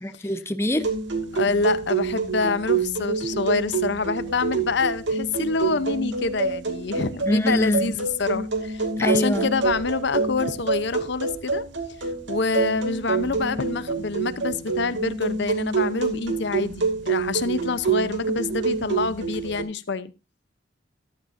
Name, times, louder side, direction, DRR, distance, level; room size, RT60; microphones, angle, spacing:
voice 1, 0.0-0.9 7.3-7.9 9.0-9.5, left 1 dB, 15° left, 0.9 m, -24 dB
sound 1, 0.7-19.6, right 4 dB, 70° right, 2.6 m, -27 dB
voice 2, 1.3-11.6 12.0-20.1, left 4 dB, 65° left, 0.8 m, -27 dB
14.0 x 12.5 x 2.6 m
head